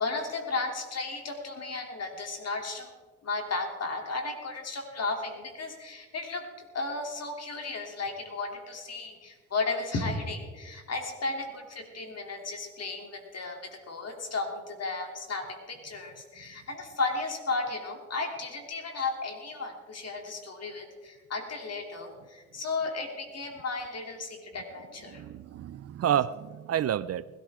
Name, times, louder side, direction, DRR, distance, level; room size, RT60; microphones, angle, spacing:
voice 1, 0.0-2.9 3.2-6.5 6.7-25.2, left 3 dB, 55° left, 3 dB, 3.2 m, -34 dB
voice 2, 25.1-27.3, right 10 dB, 50° right, 18 dB, 0.5 m, -29 dB
20.0 x 13.0 x 3.7 m, 1.4 s
supercardioid pair, 60°, 31 cm